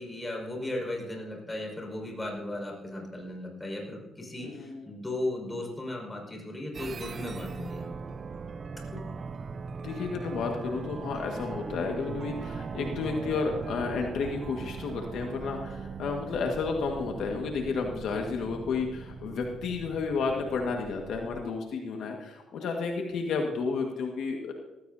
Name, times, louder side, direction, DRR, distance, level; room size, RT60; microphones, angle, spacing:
voice 1, 0.0-8.1 8.9-9.0, left 1 dB, 15° left, 0 dB, 5.5 m, -36 dB
voice 2, 4.4-4.9 9.8-24.5, left 4 dB, 75° left, 2 dB, 1.7 m, -32 dB
sound 1, 6.7-21.4, right 5 dB, 40° right, 0.6 m, -40 dB
18.0 x 15.5 x 2.8 m, 1.1 s
cardioid pair, 90°, 0 cm